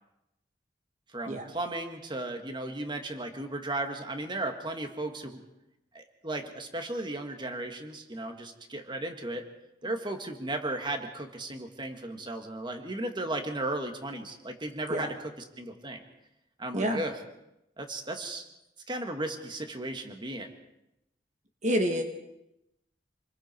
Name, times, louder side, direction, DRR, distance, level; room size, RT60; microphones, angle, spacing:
voice 1, 1.1-5.4 5.9-9.5 9.8-15.3 15.6-16.0 16.6-17.2 17.8-18.4 18.9-20.5, right 2 dB, 25° right, 5 dB, 2.1 m, -35 dB
voice 2, 21.6-22.0, equal, 45° right, 4 dB, 1.8 m, -27 dB
28.0 x 21.0 x 4.7 m, 0.88 s
head